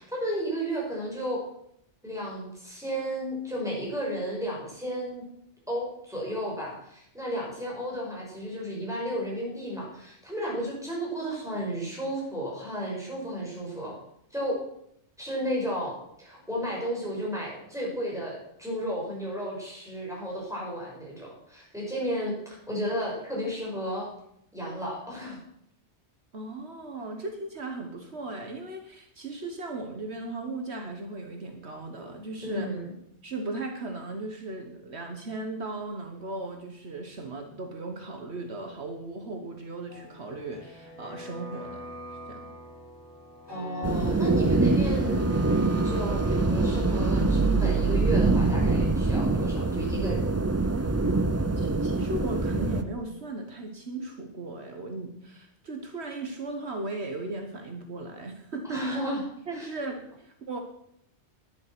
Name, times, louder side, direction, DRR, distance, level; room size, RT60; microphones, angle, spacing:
voice 1, 0.0-1.4 2.0-5.2 5.7-14.0 14.3-14.6 15.2-24.1 24.5-25.4 32.4-32.9 43.5-45.3 45.8-50.3 58.6-59.2 59.5-59.7, equal, 5° right, -4 dB, 5.8 m, -33 dB
voice 2, 26.3-32.7 33.2-41.9 42.3-42.5 51.6-59.0 59.5-60.6, right 2 dB, 65° right, 4 dB, 1.5 m, -37 dB
sound 1, 39.9-51.6 51.9-52.0, equal, 20° left, 2.9 m, -44 dB
sound 2, 43.8-52.8, right 3 dB, 20° right, 0.4 m, -24 dB
11.5 x 10.5 x 6.0 m, 0.74 s
omnidirectional pair, 1.2 m